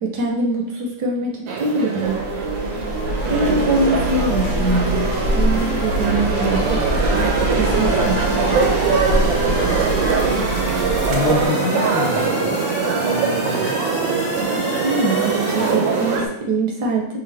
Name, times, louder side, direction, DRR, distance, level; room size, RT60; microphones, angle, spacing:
voice 1, 0.0-2.2 3.3-5.0 5.4-6.8 7.1-8.6 14.8-17.2, right 2 dB, 70° right, 0 dB, 1.0 m, -23 dB
sound 1, 1.5-16.3, right 5 dB, 85° right, 1.4 m, -22 dB
sound 2, 2.0-16.2, equal, 45° left, 1.1 m, -30 dB
sound 3, 2.1-11.5, equal, 45° right, 0.7 m, -25 dB
voice 2, 11.1-12.7 13.1-13.8, left 5 dB, 75° left, 3 dB, 1.2 m, -26 dB
5.0 x 2.5 x 3.2 m, 0.80 s
omnidirectional pair, 2.1 m